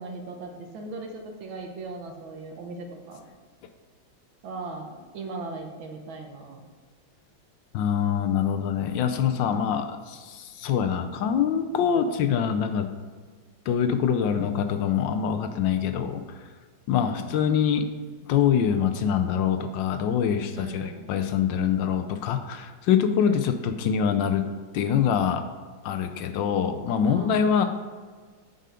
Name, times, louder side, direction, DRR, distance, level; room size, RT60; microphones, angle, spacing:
voice 1, 0.0-3.2 4.4-6.7 9.4-9.7 17.0-17.3 20.5-21.2 23.2-23.6 27.0-27.6, right 3 dB, 80° right, 3 dB, 1.8 m, -39 dB
voice 2, 7.7-12.9 13.7-16.4 16.9-17.9 18.2-24.5 24.7-25.5 25.8-27.6, left 8 dB, 75° left, 8 dB, 1.2 m, -24 dB
7.6 x 5.6 x 4.9 m, 1.5 s
omnidirectional pair, 2.2 m